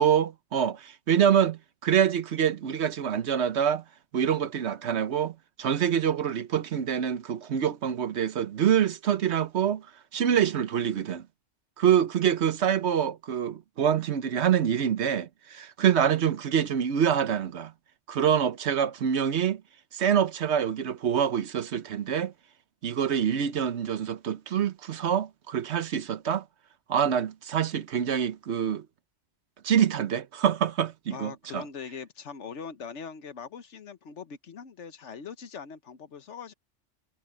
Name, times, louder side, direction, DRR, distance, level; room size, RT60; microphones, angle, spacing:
voice 1, 0.0-3.8 4.1-9.9 10.1-11.3 11.8-17.7 18.1-19.6 19.9-22.3 22.8-26.4 26.9-28.9 29.6-31.6, right 8 dB, 70° right, 1.1 m, -26 dB
voice 2, 31.1-36.5, left 6 dB, 80° left, 1.4 m, -41 dB
omnidirectional pair, 1.2 m